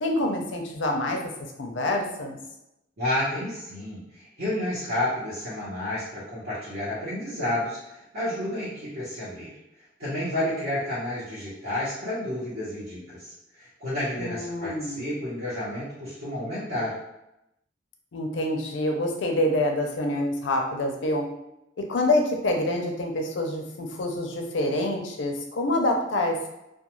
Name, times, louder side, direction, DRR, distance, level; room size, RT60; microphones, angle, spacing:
voice 1, 0.0-1.2 1.6-2.4 14.2-15.1 18.1-21.3 21.9-26.5, left 1 dB, 90° left, 2 dB, 0.5 m, -26 dB
voice 2, 3.0-9.5 10.0-16.9, left 1 dB, 55° right, -10 dB, 0.9 m, -31 dB
2.3 x 2.2 x 2.9 m, 0.87 s
head